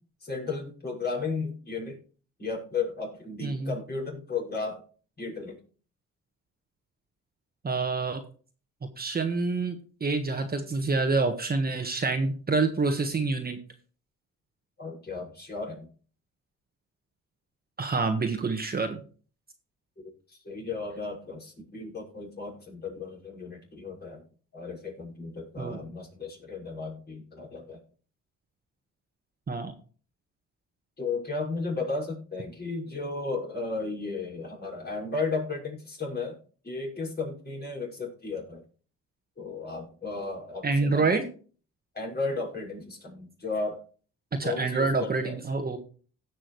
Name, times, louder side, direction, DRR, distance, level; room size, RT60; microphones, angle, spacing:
voice 1, 0.2-2.0 2.4-4.8 5.2-5.6 14.8-15.9 20.4-24.2 24.5-27.8 31.0-36.4 36.6-38.6 39.4-41.0 41.9-43.8 44.4-45.4, left 4 dB, 35° left, -2 dB, 6.1 m, -34 dB
voice 2, 3.4-3.7 7.6-8.2 9.0-13.6 17.8-19.0 25.6-25.8 29.5-29.7 40.6-41.3 44.4-45.8, right 3 dB, 30° right, 6 dB, 1.4 m, -27 dB
17.0 x 6.2 x 3.2 m, 0.39 s
cardioid pair, 90°, 30 cm